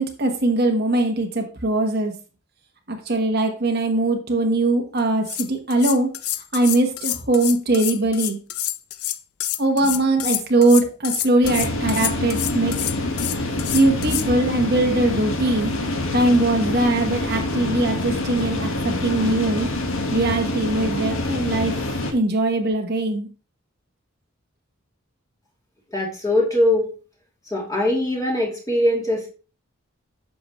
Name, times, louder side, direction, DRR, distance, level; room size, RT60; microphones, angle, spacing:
voice 1, 0.0-2.1 2.9-6.1 6.5-8.4 9.6-12.8 13.7-15.7 16.1-19.7 20.1-21.8 22.1-23.3, right 2 dB, 45° right, 3 dB, 1.3 m, -21 dB
sound 1, 5.0-5.1 5.2-14.3, left 14 dB, 90° left, 0.6 m, -28 dB
sound 2, 11.4-22.1, left 2 dB, 70° left, 1.6 m, -26 dB
voice 2, 25.9-26.9 27.5-29.3, left 1 dB, 15° left, -3 dB, 2.9 m, -21 dB
10.5 x 7.0 x 3.2 m, 0.34 s
head